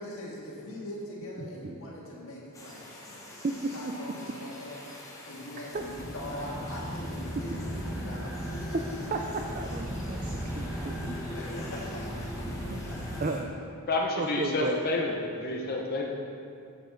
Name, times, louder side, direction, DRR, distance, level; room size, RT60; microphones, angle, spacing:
voice 1, 0.0-3.2 3.7-4.8 5.2-8.4 11.0-12.4 14.5-14.8 15.2-15.3 15.8-15.9, left 1 dB, 65° left, -5 dB, 1.7 m, -41 dB
voice 2, 1.4-1.8 3.4-3.9 5.7-5.9 8.7-11.2 11.5-11.6 12.5-12.8 13.2-13.5 14.2-14.8, right 3 dB, 35° right, 3 dB, 0.4 m, -34 dB
sound 1, 2.5-13.4, left 1 dB, 15° left, 1.0 m, -47 dB
sound 2, 5.7-13.2, equal, 10° right, 0.9 m, -36 dB
voice 3, 13.9-16.1, left 2 dB, 45° left, -1 dB, 0.8 m, -29 dB
7.7 x 7.3 x 3.9 m, 2.4 s
head